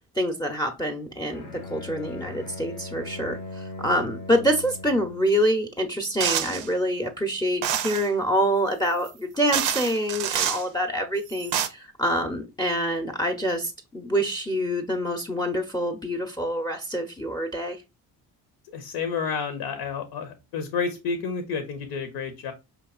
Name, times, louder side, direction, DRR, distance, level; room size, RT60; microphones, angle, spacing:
voice 1, 0.1-17.8, equal, 10° left, 5 dB, 0.7 m, -26 dB
Bowed string instrument, 1.2-5.3, left 2 dB, 85° left, 1.0 m, -39 dB
sound 1, 6.2-6.7 7.6-8.1 9.1-9.2 9.5-10.6 11.3-11.7, right 10 dB, 80° right, 0.6 m, -27 dB
voice 2, 18.7-22.5, left 5 dB, 65° left, 8 dB, 0.8 m, -30 dB
4.6 x 2.9 x 2.3 m, 0.26 s
hypercardioid pair, 60°, 44 cm